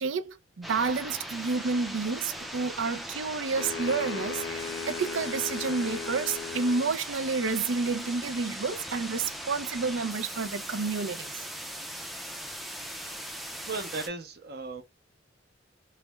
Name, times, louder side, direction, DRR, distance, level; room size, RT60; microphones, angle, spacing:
voice 1, 0.0-11.3, right 4 dB, 90° right, 0.5 m, -30 dB
sound 1, 0.6-14.1, equal, ahead, 0.4 m, -39 dB
sound 2, 3.6-6.9, left 5 dB, 70° left, 0.4 m, -37 dB
voice 2, 13.7-14.8, right 3 dB, 55° right, 0.7 m, -36 dB
3.2 x 2.1 x 3.2 m
head